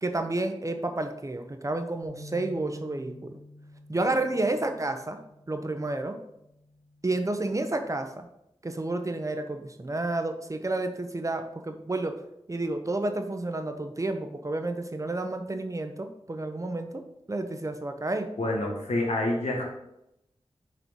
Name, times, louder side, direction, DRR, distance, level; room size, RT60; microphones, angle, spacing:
voice 1, 0.0-3.4 3.9-5.2 5.5-6.2 7.0-8.3 8.6-12.2 12.5-18.4, right 2 dB, 30° right, 6 dB, 0.8 m, -30 dB
sound 1, 2.0-8.3, left 1 dB, 55° left, 2.8 m, -50 dB
voice 2, 18.4-19.6, left 1 dB, 90° left, -1 dB, 1.8 m, -27 dB
6.3 x 4.4 x 5.3 m, 0.82 s
wide cardioid pair, 80°, 11 cm